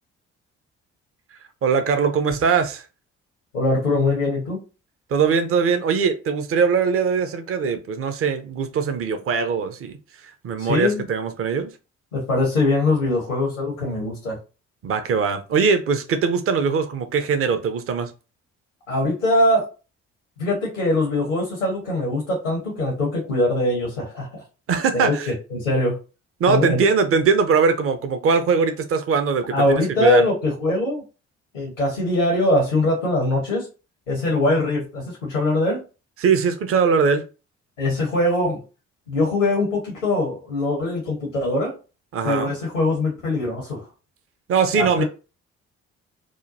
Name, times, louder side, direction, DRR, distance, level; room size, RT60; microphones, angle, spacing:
voice 1, 1.6-2.8 5.1-10.0 10.4-11.7 14.8-18.1 24.7-25.3 26.4-30.3 36.2-37.2 42.1-42.5 44.5-45.0, right 5 dB, 35° right, 0.7 m, -21 dB
voice 2, 3.5-4.6 10.6-11.1 12.1-14.4 18.9-19.6 20.4-24.4 24.9-25.2 25.5-26.0 26.5-26.8 29.5-31.0 31.5-33.7 34.1-35.8 37.8-38.6 39.1-41.7 42.2-43.8 44.7-45.0, left 2 dB, 80° left, 0.9 m, -22 dB
4.9 x 2.2 x 2.6 m
figure-of-eight pair, 45°, 37 cm